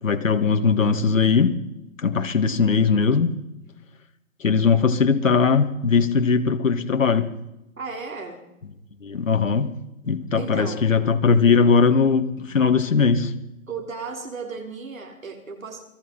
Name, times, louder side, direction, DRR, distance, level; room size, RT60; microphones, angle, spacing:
voice 1, 0.0-1.6 2.0-3.4 4.4-7.3 9.0-9.7 10.1-13.3, left 5 dB, 70° left, 2.6 m, -19 dB
voice 2, 7.8-8.4 10.3-10.9 13.7-15.8, right 4 dB, 75° right, 5.8 m, -35 dB
29.0 x 20.5 x 5.9 m
hypercardioid pair, 175°, 41 cm